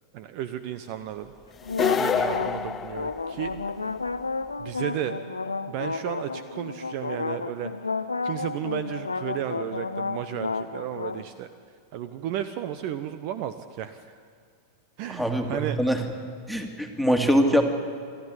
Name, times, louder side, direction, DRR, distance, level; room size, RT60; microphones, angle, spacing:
voice 1, 0.1-1.3 1.8-3.6 4.6-5.1 5.7-7.7 8.2-11.5 11.9-14.1 15.0-15.8, right 11 dB, 45° right, 12 dB, 0.8 m, -33 dB
sound 1, 1.6-11.2, left 4 dB, 80° left, 0.7 m, -32 dB
sound 2, 1.7-3.7, left 7 dB, 20° left, 0.9 m, -27 dB
voice 2, 15.1-16.0 16.5-17.6, equal, 5° right, 5 dB, 2.2 m, -23 dB
26.0 x 12.5 x 9.6 m, 2.1 s
figure-of-eight pair, 90°, 0 cm